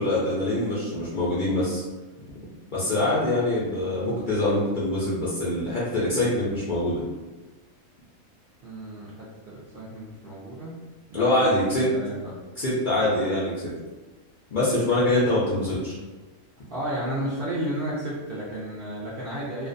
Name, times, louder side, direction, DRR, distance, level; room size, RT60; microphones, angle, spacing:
voice 1, 0.0-1.8 2.3-2.4 2.7-7.0 11.1-11.9 12.6-13.7 14.5-16.0, left 1 dB, 65° left, -8 dB, 0.4 m, -24 dB
voice 2, 8.6-10.8 11.1-12.3 16.7-19.7, right 1 dB, 65° right, -7 dB, 0.5 m, -33 dB
2.5 x 2.2 x 2.5 m, 1.2 s
omnidirectional pair, 1.5 m